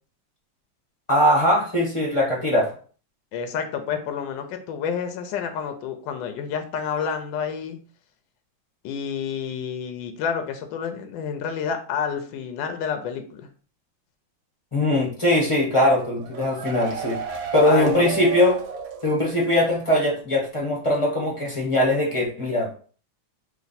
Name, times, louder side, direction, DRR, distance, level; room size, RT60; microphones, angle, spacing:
voice 1, 1.1-2.7 14.7-17.2 17.5-18.6 19.0-22.7, left 1 dB, 25° left, -2 dB, 0.8 m, -21 dB
voice 2, 3.3-7.8 8.8-13.5 17.7-18.2, left 7 dB, 80° left, 6 dB, 1.3 m, -29 dB
sound 1, 16.0-19.6 19.9-20.0 20.3-20.4, right 7 dB, 90° right, 1.4 m, -33 dB
3.2 x 3.0 x 4.0 m, 0.41 s
omnidirectional pair, 2.1 m